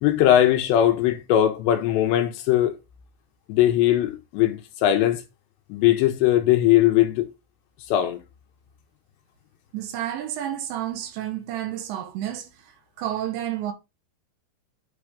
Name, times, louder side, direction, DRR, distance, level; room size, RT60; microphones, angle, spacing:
voice 1, 0.0-2.8 3.5-5.2 5.7-7.3 7.9-8.2, left 12 dB, 80° left, 2.7 m, -20 dB
voice 2, 9.7-12.7 13.0-13.7, right 11 dB, 75° right, 3.2 m, -30 dB
9.0 x 3.4 x 5.1 m
omnidirectional pair, 5.5 m